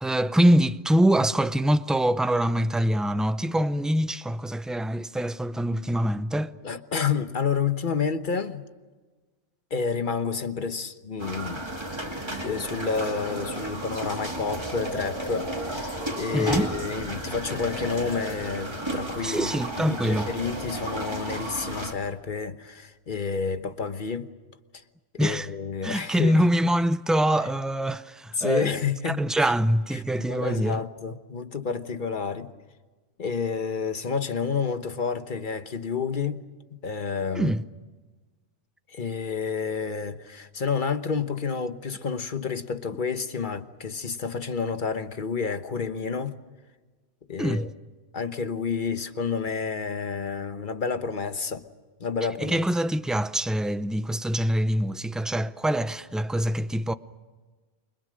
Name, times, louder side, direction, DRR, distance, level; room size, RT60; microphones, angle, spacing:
voice 1, 0.0-6.5 16.3-16.7 19.2-20.3 25.2-25.5 25.8-28.8 29.1-30.8 37.3-37.6 47.4-47.7 52.4-56.9, right 1 dB, ahead, 0.5 m, -24 dB
voice 2, 6.6-8.7 9.7-11.7 12.4-24.3 25.1-26.4 28.3-29.5 29.9-32.5 33.2-36.4 36.7-37.5 38.9-46.3 47.3-47.7 48.1-51.6 52.0-52.6, left 5 dB, 50° left, 1.3 m, -30 dB
sound 1, 11.2-21.9, right 1 dB, 25° right, 2.6 m, -33 dB
29.5 x 23.5 x 6.4 m
omnidirectional pair, 1.1 m